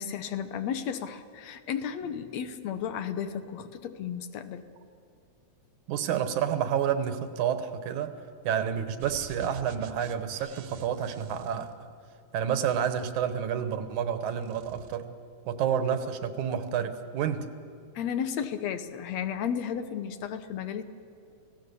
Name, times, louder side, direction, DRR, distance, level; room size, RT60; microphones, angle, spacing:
voice 1, 0.0-4.6 18.0-20.8, left 8 dB, 70° left, 10 dB, 2.1 m, -33 dB
voice 2, 5.9-8.1 8.4-11.7 12.3-15.1 15.5-17.5, right 8 dB, 85° right, 10 dB, 2.6 m, -29 dB
sound 1, 9.0-12.3 13.0-14.1 14.4-15.0, right 6 dB, 65° right, 2.0 m, -47 dB
28.5 x 17.0 x 6.9 m, 2.6 s
omnidirectional pair, 3.3 m